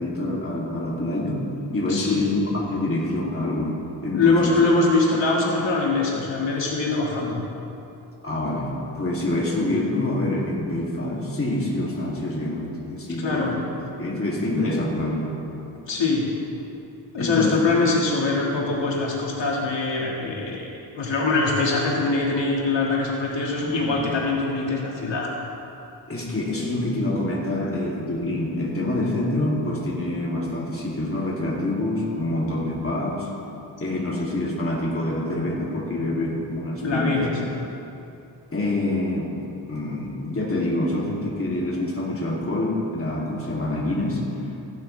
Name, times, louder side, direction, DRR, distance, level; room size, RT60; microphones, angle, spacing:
voice 1, 0.0-4.6 8.2-13.6 14.0-15.4 17.2-17.6 23.6-24.2 26.1-33.3 33.8-37.2 38.5-39.3 39.7-44.2, left 1 dB, 30° left, -4 dB, 2.6 m, -26 dB
voice 2, 1.9-2.3 4.1-7.4 13.2-13.6 15.9-16.3 17.1-20.7 21.0-25.3 27.6-27.7 36.8-37.3, left 3 dB, 80° left, -3 dB, 1.8 m, -23 dB
15.5 x 11.5 x 3.3 m, 2.7 s
cardioid pair, 75°, 44 cm